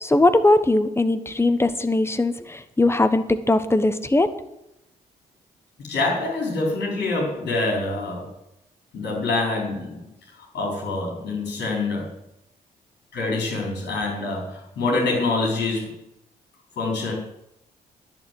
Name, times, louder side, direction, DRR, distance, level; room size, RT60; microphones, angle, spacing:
voice 1, 0.0-4.3, left 2 dB, 15° left, 10 dB, 1.2 m, -20 dB
voice 2, 5.9-8.3 8.9-10.0 10.5-12.1 13.1-15.9 16.8-17.1, left 3 dB, 60° left, -2 dB, 4.4 m, -25 dB
11.0 x 7.3 x 7.8 m, 0.84 s
figure-of-eight pair, 45°, 19 cm